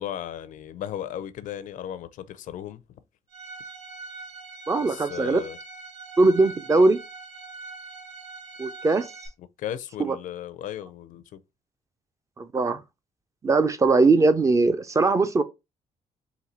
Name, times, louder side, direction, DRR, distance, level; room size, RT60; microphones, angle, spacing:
voice 1, 0.0-2.8 4.8-5.6 9.6-11.4, left 11 dB, 75° left, 0.5 m, -35 dB
Bowed string instrument, 3.3-9.3, right 3 dB, 45° right, 2.3 m, -42 dB
voice 2, 4.7-5.4 6.2-7.0 8.6-9.1 10.0-10.2 12.4-12.8 13.4-15.4, right 3 dB, 25° right, 0.4 m, -20 dB
4.0 x 2.7 x 4.2 m
cardioid pair, 145°, 13 cm